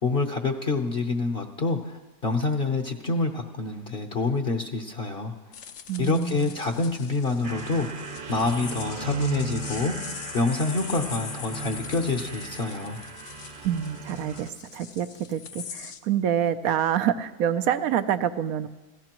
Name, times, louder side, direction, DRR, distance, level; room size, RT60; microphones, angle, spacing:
voice 1, 0.0-5.3 6.0-13.0, left 3 dB, 45° left, 3 dB, 1.0 m, -27 dB
sound 1, 5.5-16.0, left 7 dB, 65° left, 1.2 m, -42 dB
voice 2, 5.9-6.5 13.6-18.7, right 9 dB, 75° right, 12 dB, 1.1 m, -27 dB
sound 2, 7.4-14.5, right 3 dB, 40° right, 0.9 m, -37 dB
26.5 x 16.5 x 3.0 m, 1.2 s
omnidirectional pair, 1.5 m